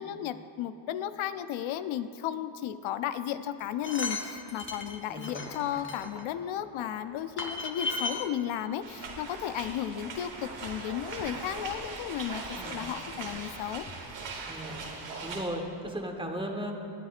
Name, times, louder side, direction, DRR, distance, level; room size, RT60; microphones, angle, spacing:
voice 1, 0.0-13.8, left 10 dB, 85° left, 11 dB, 0.6 m, -34 dB
sound 1, 3.6-6.2 7.0-7.1 7.4-8.3 9.0-9.1 9.3-9.4, left 3 dB, 25° left, 1.2 m, -35 dB
voice 2, 5.1-5.7 12.6-12.8 14.5-14.8 15.2-16.7, equal, 10° right, 2 dB, 1.3 m, -36 dB
sound 2, 5.5-5.7 6.2-6.4 6.8-8.3 8.7-8.8 9.4-9.7 10.1-10.3 10.6-10.8 11.2-11.4 11.8-12.0 12.3-14.2, left 4 dB, 50° left, 1.3 m, -50 dB
sound 3, 8.8-15.5, right 3 dB, 70° right, 1.7 m, -40 dB
19.0 x 9.9 x 2.5 m, 2.5 s
cardioid pair, 90°, 46 cm